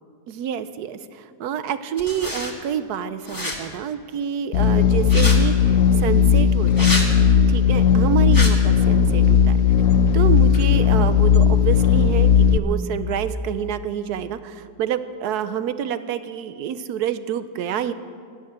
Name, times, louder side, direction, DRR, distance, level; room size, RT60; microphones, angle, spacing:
voice 1, 0.3-7.0 7.5-9.6 10.1-17.9, right 9 dB, 70° right, 13 dB, 1.2 m, -27 dB
sound 1, 2.0-2.5 3.2-3.6 5.0-5.4 6.7-7.1 8.3-8.5, left 1 dB, 10° left, 1.5 m, -27 dB
sound 2, 4.5-12.6, left 7 dB, 65° left, 0.9 m, -16 dB
12.5 x 11.5 x 8.8 m, 2.1 s
omnidirectional pair, 1.8 m